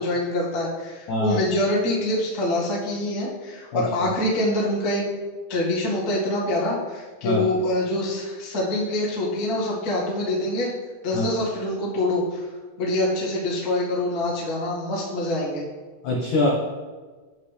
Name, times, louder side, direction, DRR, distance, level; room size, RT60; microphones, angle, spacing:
voice 1, 0.0-5.0 5.5-10.7 11.0-12.4 12.8-15.6, left 1 dB, 50° left, -5 dB, 1.0 m, -25 dB
voice 2, 1.1-1.4 3.7-3.8 7.2-7.4 11.1-11.3 16.0-16.5, left 2 dB, 80° left, -3 dB, 1.7 m, -23 dB
8.3 x 7.9 x 3.3 m, 1.4 s
omnidirectional pair, 5.1 m